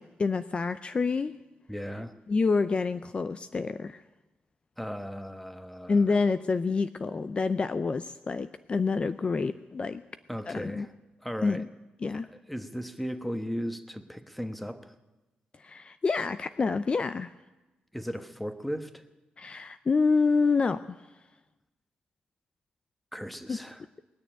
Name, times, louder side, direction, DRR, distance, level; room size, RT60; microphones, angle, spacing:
voice 1, 0.0-1.3 2.3-4.0 5.9-10.0 10.5-10.9 11.4-11.7 12.0-12.3 15.6-17.3 19.4-21.0 23.5-23.6, left 4 dB, 35° left, 12 dB, 0.5 m, -27 dB
voice 2, 1.7-2.1 4.8-6.0 10.3-10.9 11.2-11.6 12.3-14.9 17.9-19.0 23.1-23.8, equal, ahead, 9 dB, 1.1 m, -36 dB
20.5 x 7.0 x 10.0 m, 1.1 s
cardioid pair, 95°, 3 cm